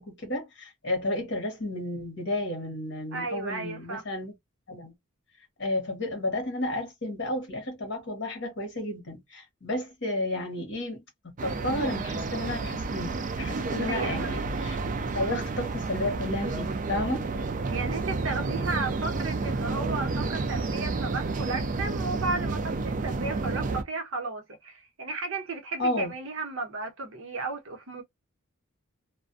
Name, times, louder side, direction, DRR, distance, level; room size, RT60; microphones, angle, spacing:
voice 1, 0.0-4.3 4.7-4.9 5.6-17.3 25.8-26.1, left 1 dB, 55° left, 1.2 m, -32 dB
voice 2, 3.1-4.0 13.8-14.3 17.7-28.0, right 3 dB, 65° right, 0.8 m, -34 dB
sound 1, 11.4-23.8, right 3 dB, 35° right, 0.3 m, -30 dB
2.4 x 2.2 x 2.4 m
head